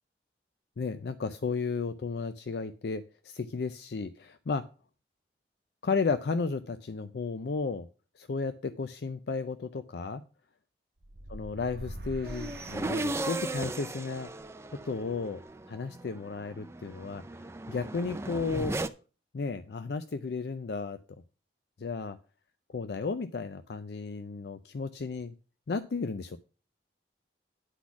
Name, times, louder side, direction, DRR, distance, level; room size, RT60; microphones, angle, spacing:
voice 1, 0.8-4.6 5.8-7.9 8.2-10.2 11.3-14.3 14.8-15.4 15.7-17.2 17.7-18.7 19.3-21.0 21.8-22.2 22.7-25.3 25.7-26.4, left 4 dB, 65° left, 10 dB, 0.4 m, -33 dB
sound 1, 11.0-13.7, right 1 dB, 60° right, 0.8 m, -44 dB
sound 2, 12.2-18.9, right 2 dB, 15° right, 0.4 m, -37 dB
9.9 x 4.1 x 5.9 m, 0.36 s
head